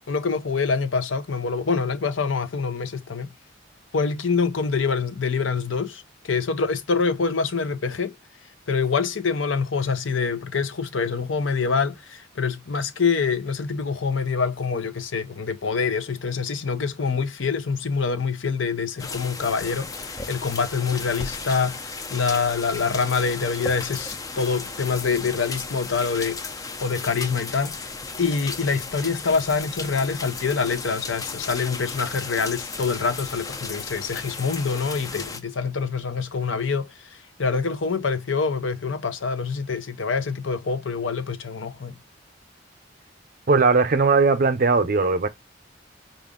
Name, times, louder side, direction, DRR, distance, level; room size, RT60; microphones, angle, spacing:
voice 1, 0.1-3.3 3.9-8.2 8.7-26.4 26.8-27.8 28.2-41.9, left 5 dB, 85° left, 0.7 m, -25 dB
sound 1, 19.0-35.4, left 4 dB, 20° left, 0.5 m, -35 dB
voice 2, 43.5-45.3, right 4 dB, 45° right, 0.6 m, -19 dB
5.0 x 2.5 x 3.6 m
head